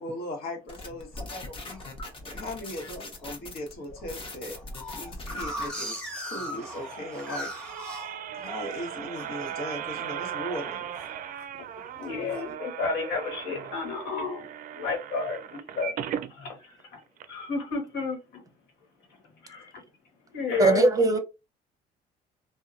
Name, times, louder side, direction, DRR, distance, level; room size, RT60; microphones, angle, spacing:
voice 1, 0.0-1.8 2.3-4.6 5.0-7.5 8.3-10.9, left 1 dB, 65° left, 1.2 m, -38 dB
sound 1, 0.7-5.7, left 2 dB, 30° left, 0.9 m, -41 dB
sound 2, 1.1-1.9 2.4-2.8 3.2-3.3 3.6-3.7 4.0-8.8 9.1-9.5 9.9-10.2 10.5-11.5 11.9-12.4, equal, 5° left, 1.0 m, -39 dB
sound 3, 6.1-16.3 16.8-16.9 17.2-17.3, right 9 dB, 55° right, 0.4 m, -38 dB
voice 2, 12.0-14.5 14.8-15.9 16.3-17.0 17.3-18.2 19.4-19.7 20.3-20.8, left 4 dB, 85° left, 1.2 m, -31 dB
voice 3, 20.6-21.2, right 2 dB, 20° right, 0.7 m, -20 dB
2.8 x 2.2 x 2.4 m
cardioid pair, 110°, 17 cm